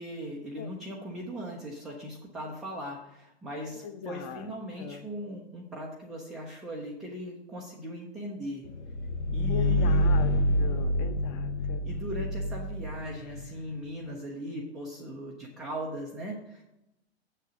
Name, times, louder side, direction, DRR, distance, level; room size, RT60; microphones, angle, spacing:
voice 1, 0.0-8.7 9.3-10.2 11.8-16.6, equal, ahead, -5 dB, 0.3 m, -39 dB
voice 2, 3.8-4.5 4.8-5.1 9.5-11.9, left 8 dB, 30° left, 10 dB, 0.7 m, -40 dB
sound 1, 8.8-13.5, left 1 dB, 80° left, 1.0 m, -27 dB
7.4 x 6.7 x 5.0 m, 0.85 s
hypercardioid pair, 130°, 33 cm